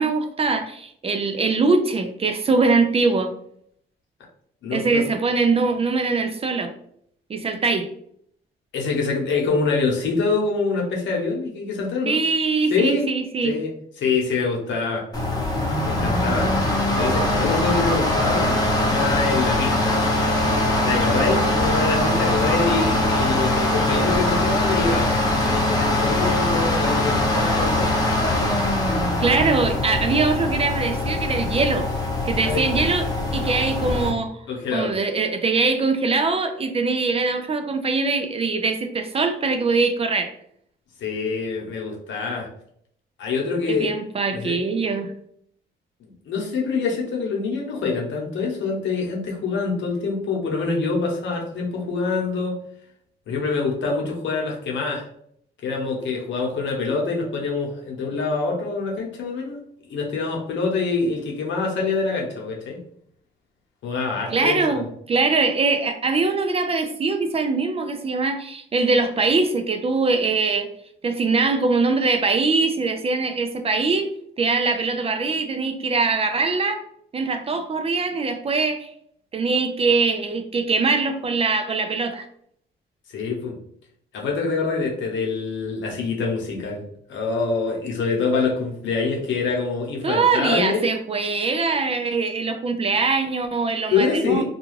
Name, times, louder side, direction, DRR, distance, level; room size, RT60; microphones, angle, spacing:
voice 1, 0.0-3.3 4.7-6.7 7.3-7.9 12.1-13.5 29.2-31.9 32.2-33.1 33.3-34.4 34.7-40.3 43.7-45.1 64.3-70.7 71.0-74.1 74.4-76.8 77.1-78.9 79.3-82.3 90.0-94.4, right 4 dB, 30° right, 6 dB, 0.3 m, -22 dB
voice 2, 4.6-5.1 8.7-12.2 12.7-13.1 13.4-15.0 15.8-16.5 16.9-20.0 20.8-27.9 32.4-32.9 34.5-34.9 41.0-42.5 43.2-43.9 44.3-44.6 46.0-52.6 53.3-55.1 55.6-59.6 59.9-62.8 63.8-64.8 83.1-83.6 84.1-86.8 87.1-90.8 93.9-94.4, left 4 dB, 70° left, -1 dB, 0.9 m, -25 dB
sound 1, 15.1-34.1, left 1 dB, 20° left, 0.8 m, -22 dB
2.4 x 2.2 x 3.1 m, 0.68 s
cardioid pair, 90°, 20 cm